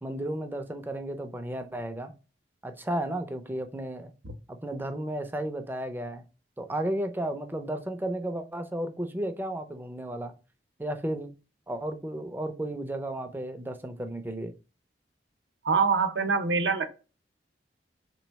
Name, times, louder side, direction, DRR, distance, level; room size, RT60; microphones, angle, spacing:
voice 1, 0.0-2.1 2.6-4.1 4.6-6.2 6.6-10.3 10.8-11.3 11.7-14.5, right 1 dB, 10° right, 0.5 m, -33 dB
voice 2, 15.6-16.9, right 5 dB, 75° right, 0.7 m, -25 dB
3.5 x 3.1 x 4.6 m
head